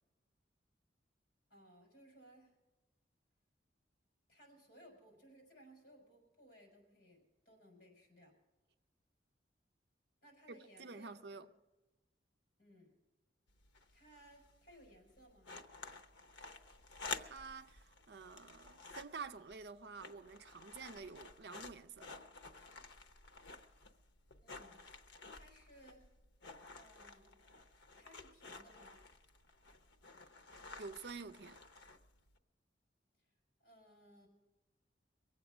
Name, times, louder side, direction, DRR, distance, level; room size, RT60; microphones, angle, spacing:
voice 1, 1.5-2.6 4.3-8.4 10.2-11.5 12.6-13.0 13.9-15.6 24.4-26.1 26.8-29.0 33.2-33.4 33.6-34.3, equal, 50° left, 5.1 m, -62 dB
voice 2, 10.5-11.5 17.2-22.1 30.8-31.6, right 4 dB, 65° right, 0.5 m, -49 dB
sound 1, 13.5-32.4, left 4 dB, 85° left, 0.8 m, -52 dB
23.0 x 8.0 x 6.0 m
head